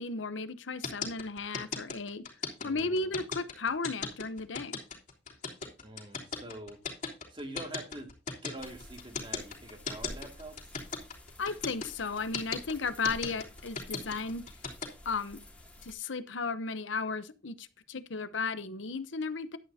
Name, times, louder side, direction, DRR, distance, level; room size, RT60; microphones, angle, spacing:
voice 1, 0.0-2.2 2.6-4.8 11.4-14.4 15.0-15.4 15.8-19.6, left 4 dB, 75° left, 0.9 m, -35 dB
sound 1, 0.8-14.9, left 5 dB, 40° left, 3.5 m, -36 dB
voice 2, 2.6-3.1 5.8-6.8 7.3-8.1 8.4-10.8 13.2-13.5, right 1 dB, 25° right, 2.2 m, -45 dB
sound 2, 8.6-15.9, left 1 dB, 10° left, 2.4 m, -51 dB
11.5 x 9.7 x 2.8 m
head